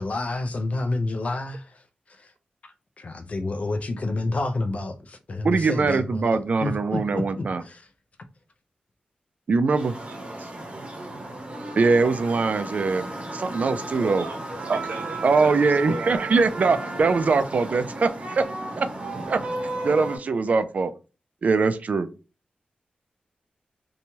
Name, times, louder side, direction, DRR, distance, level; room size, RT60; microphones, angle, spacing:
voice 1, 0.0-1.6 3.0-7.8, left 2 dB, 45° left, 0.4 m, -29 dB
voice 2, 5.4-7.6 9.5-9.9 11.8-14.2 14.7-14.8 15.2-18.4 18.8-18.9 19.3-19.4 19.8-20.9 21.4-22.1, right 4 dB, 55° right, 0.3 m, -22 dB
sound 1, 9.7-20.2, right 2 dB, 40° right, 0.8 m, -34 dB
voice 3, 9.8-10.5 13.9-16.3, right 2 dB, 70° right, 0.8 m, -38 dB
2.9 x 2.2 x 2.7 m
wide cardioid pair, 130°, 3 cm